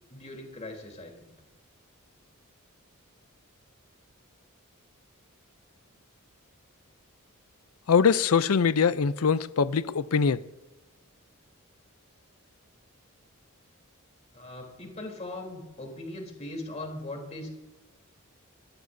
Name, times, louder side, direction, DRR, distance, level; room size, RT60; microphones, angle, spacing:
voice 1, 0.1-1.3 14.3-17.5, left 2 dB, 30° left, 3.5 m, -40 dB
voice 2, 7.9-10.4, left 6 dB, 80° left, 0.5 m, -23 dB
27.0 x 12.5 x 2.7 m
head